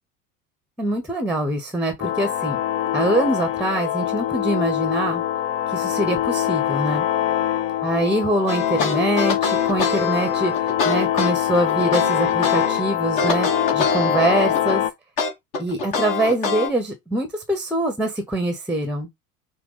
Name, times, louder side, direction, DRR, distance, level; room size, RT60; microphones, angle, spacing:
voice 1, 0.8-2.6 2.9-5.2 5.7-7.1 7.8-14.8 15.6-19.1, right 1 dB, 5° right, 0.9 m, -24 dB
sound 1, 2.0-14.9, left 12 dB, 30° left, 0.5 m, -24 dB
sound 2, 8.5-12.8 13.2-14.8 15.2-16.7, left 4 dB, 45° left, 1.8 m, -24 dB
6.0 x 2.2 x 3.9 m
figure-of-eight pair, 75°, 44 cm